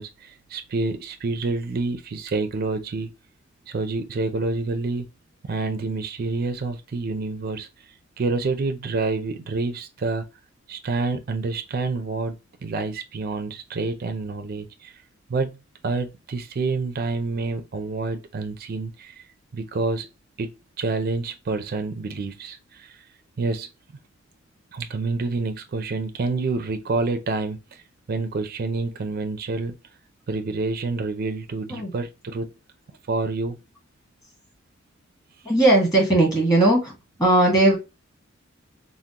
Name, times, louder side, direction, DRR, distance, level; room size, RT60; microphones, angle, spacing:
voice 1, 0.0-3.1 3.7-5.1 5.4-7.7 8.2-10.3 10.7-14.9 15.3-15.6 15.8-19.3 19.5-20.1 20.4-23.0 23.4-23.7 24.7-27.8 28.1-29.8 30.3-32.5 33.1-33.6, right 3 dB, 45° right, 0.4 m, -28 dB
voice 2, 35.4-36.9 37.2-37.8, right 2 dB, 20° left, 1.4 m, -18 dB
3.6 x 2.0 x 2.8 m
head